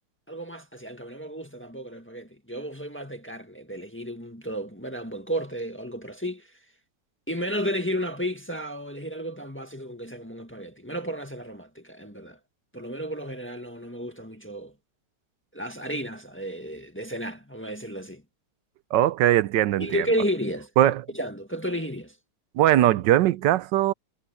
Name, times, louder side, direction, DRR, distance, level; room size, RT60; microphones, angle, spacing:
voice 1, 0.3-6.5 7.3-12.4 12.7-14.7 15.5-18.2 19.8-22.1, equal, 5° left, 1.6 m, -33 dB
voice 2, 18.9-20.1 20.8-21.0 22.5-23.9, right 13 dB, 80° right, 1.3 m, -20 dB
omnidirectional pair, 1.9 m